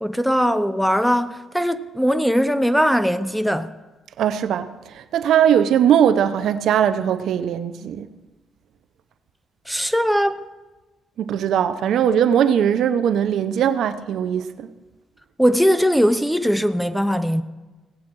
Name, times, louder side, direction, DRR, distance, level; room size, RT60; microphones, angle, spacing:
voice 1, 0.0-3.7 9.7-10.4 15.4-17.4, equal, ahead, 0.6 m, -20 dB
voice 2, 4.2-8.1 11.2-14.7, right 9 dB, 75° right, 0.7 m, -20 dB
17.0 x 8.5 x 4.6 m
cardioid pair, 90°, 0 cm